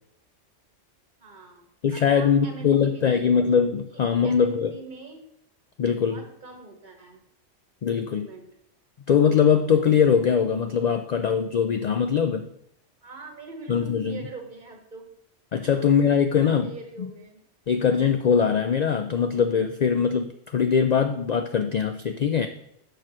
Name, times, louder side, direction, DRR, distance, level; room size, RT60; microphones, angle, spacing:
voice 1, 1.2-3.5 3.9-5.2 6.1-7.2 7.9-8.5 13.0-15.1 15.7-15.9 16.3-17.4, right 3 dB, 40° right, 3 dB, 1.3 m, -43 dB
voice 2, 1.8-4.7 5.8-6.2 7.8-8.3 9.1-12.5 13.7-14.2 15.5-16.7 17.0-17.1 17.7-22.5, left 7 dB, 70° left, 7 dB, 0.4 m, -22 dB
6.9 x 4.6 x 6.0 m, 0.74 s
omnidirectional pair, 1.2 m